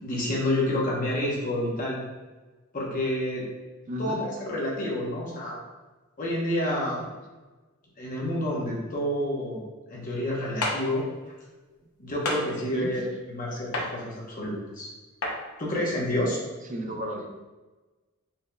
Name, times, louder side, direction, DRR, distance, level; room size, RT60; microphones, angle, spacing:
voice 1, 0.0-2.0 2.7-3.4 4.0-5.6 6.2-7.0 8.0-9.6 9.9-11.0 12.0-13.0 13.3-14.9 15.6-16.4, left 1 dB, 40° left, -4 dB, 0.9 m, -29 dB
voice 2, 3.9-4.2 7.0-7.1 12.7-13.0 16.7-17.3, equal, 35° right, 2 dB, 0.5 m, -33 dB
sound 1, 10.6-10.8 12.2-12.4 13.7-13.9 15.2-15.4, left 2 dB, 85° left, 0.7 m, -27 dB
4.2 x 3.5 x 2.2 m, 1.2 s
head